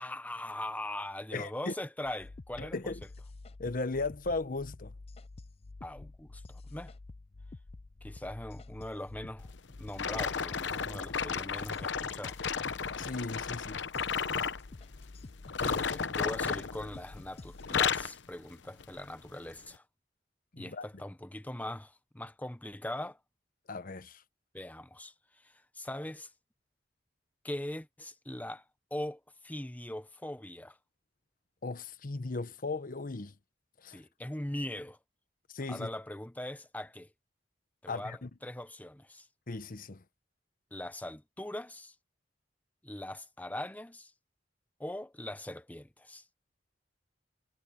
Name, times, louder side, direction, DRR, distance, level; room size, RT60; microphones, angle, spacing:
voice 1, 0.0-2.8 5.8-6.9 8.0-9.5 9.8-12.4 15.6-19.8 20.6-23.2 24.5-26.3 27.4-28.6 28.9-30.8 33.9-35.0 35.7-37.1 37.8-39.3 40.7-41.9 42.8-44.1 44.8-46.2, left 1 dB, 10° left, 0.9 m, -41 dB
voice 2, 1.3-1.7 2.6-3.0 3.6-4.9 13.0-13.8 20.5-20.8 23.7-24.2 31.6-33.3 33.8-34.0 35.5-35.9 37.9-38.3 39.5-40.0, left 3 dB, 50° left, 1.0 m, -36 dB
sound 1, 2.0-18.0, left 2 dB, 35° left, 0.5 m, -49 dB
sound 2, 10.0-14.6 15.4-17.2 17.5-18.2 18.8-19.0 19.6-19.7, left 6 dB, 85° left, 0.9 m, -33 dB
head